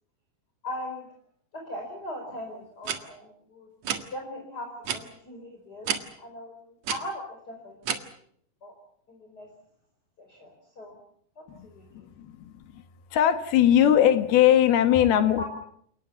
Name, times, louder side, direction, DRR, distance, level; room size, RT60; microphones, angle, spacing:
voice 1, 0.6-1.1 1.5-3.7 4.1-5.9 6.1-8.0 8.6-8.7 9.1-9.5 10.2-11.0 11.4-12.1 15.4-15.5, left 1 dB, 25° left, 1 dB, 5.1 m, -39 dB
sound 1, 2.9-3.0 3.8-4.1 4.9-5.0 5.9-6.0 6.8-7.0 7.9-8.0, right 7 dB, 55° right, 2.6 m, -28 dB
voice 2, 11.9-12.8 13.1-15.4, left 10 dB, 80° left, 9 dB, 3.5 m, -21 dB
29.5 x 19.0 x 7.1 m, 0.66 s
omnidirectional pair, 4.4 m